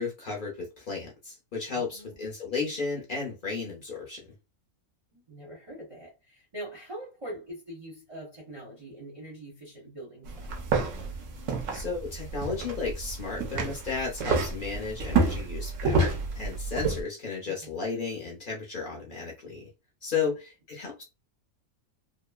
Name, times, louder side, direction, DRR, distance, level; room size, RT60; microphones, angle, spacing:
voice 1, 0.0-4.3 11.7-19.7 20.0-21.0, left 4 dB, 45° left, 0.7 m, -34 dB
voice 2, 1.7-2.3 5.1-10.5 17.6-17.7 20.1-20.3, right 1 dB, 30° right, 0.7 m, -43 dB
sound 1, 10.2-17.0, right 3 dB, 70° right, 1.0 m, -29 dB
2.9 x 2.0 x 2.2 m
omnidirectional pair, 1.5 m